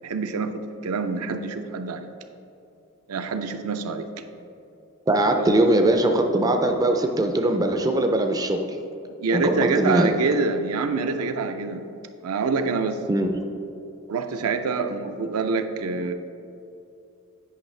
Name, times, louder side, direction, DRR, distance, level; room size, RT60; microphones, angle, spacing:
voice 1, 0.0-0.5 0.8-2.1 3.1-4.1 5.4-5.5 9.2-11.8 12.2-13.0 14.1-16.1, right 4 dB, 70° right, 7 dB, 0.5 m, -26 dB
voice 2, 5.1-8.6 9.3-10.1 13.1-13.3, right 1 dB, 15° right, 5 dB, 0.4 m, -21 dB
9.0 x 5.4 x 3.2 m, 2.7 s
head